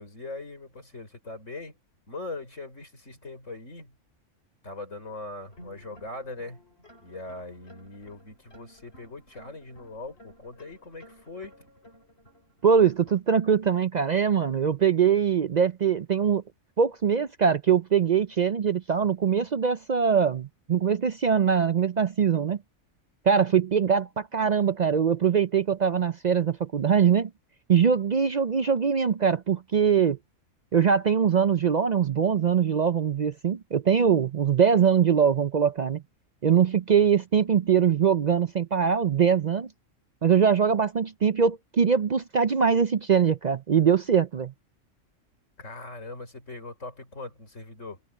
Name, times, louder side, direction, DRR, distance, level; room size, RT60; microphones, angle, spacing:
voice 1, 0.0-1.8 2.1-3.9 4.6-6.6 7.0-11.5 45.6-48.0, left 2 dB, 70° left, 6.2 m, -40 dB
sound 1, 5.4-13.2, equal, 50° left, 6.2 m, -54 dB
voice 2, 12.6-16.4 16.8-22.6 23.3-27.3 27.7-30.2 30.7-36.0 36.4-39.7 40.2-44.5, right 7 dB, 55° right, 0.5 m, -22 dB
omnidirectional pair, 1.3 m